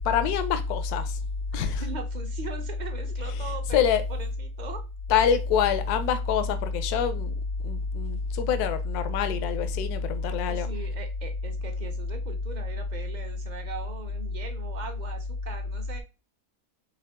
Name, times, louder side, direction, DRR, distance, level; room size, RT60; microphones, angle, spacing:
voice 1, 0.0-1.2 1.5-1.8 3.7-4.0 5.1-7.3 7.6-10.7, left 6 dB, 80° left, 1.1 m, -25 dB
voice 2, 1.5-3.8 4.1-4.8 10.5-16.0, right 5 dB, 50° right, 0.5 m, -40 dB
4.7 x 3.0 x 3.4 m
omnidirectional pair, 1.6 m